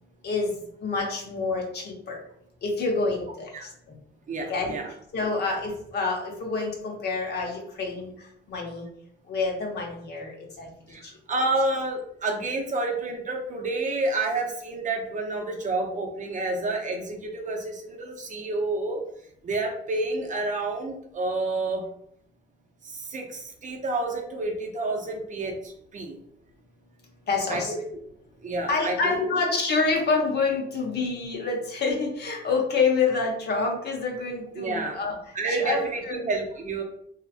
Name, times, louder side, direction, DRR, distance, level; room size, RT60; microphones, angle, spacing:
voice 1, 0.2-2.2 2.6-3.7 4.5-4.7 5.1-8.1 8.5-8.9 9.3-10.7 11.0-11.5 27.3-27.7 28.7-35.2 35.5-36.2, left 4 dB, 55° left, 0 dB, 0.8 m, -27 dB
voice 2, 4.3-4.9 10.9-19.0 19.4-21.9 22.8-26.2 27.5-27.8 28.4-29.3 34.6-35.0 35.3-36.8, right 2 dB, 40° right, 2 dB, 0.5 m, -29 dB
2.8 x 2.4 x 2.4 m, 0.70 s
cardioid pair, 90°, 20 cm